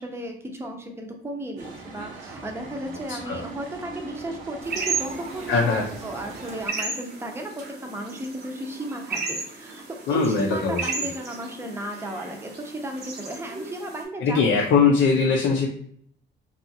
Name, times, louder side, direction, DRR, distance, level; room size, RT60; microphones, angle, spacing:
voice 1, 0.0-9.8 10.1-14.7, right 1 dB, 10° right, 2 dB, 0.5 m, -35 dB
sound 1, 1.6-6.7, right 3 dB, 85° right, 0.7 m, -40 dB
sound 2, 4.6-14.0, right 4 dB, 55° right, 0.8 m, -34 dB
voice 2, 5.5-5.8 10.1-10.8 14.2-15.7, left 5 dB, 80° left, -1 dB, 0.5 m, -20 dB
2.6 x 2.4 x 2.6 m, 0.64 s
cardioid pair, 90°, 20 cm